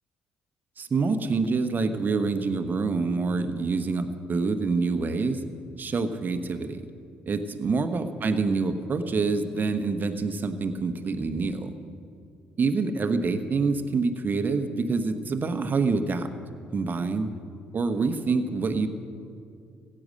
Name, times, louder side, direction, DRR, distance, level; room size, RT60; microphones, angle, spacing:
voice 1, 0.8-5.4 5.8-6.8 7.3-11.7 12.6-16.3 16.7-17.3 17.7-18.9, right 4 dB, 40° right, 8 dB, 1.1 m, -26 dB
16.0 x 8.7 x 6.5 m, 2.4 s
hypercardioid pair, 55°, 5 cm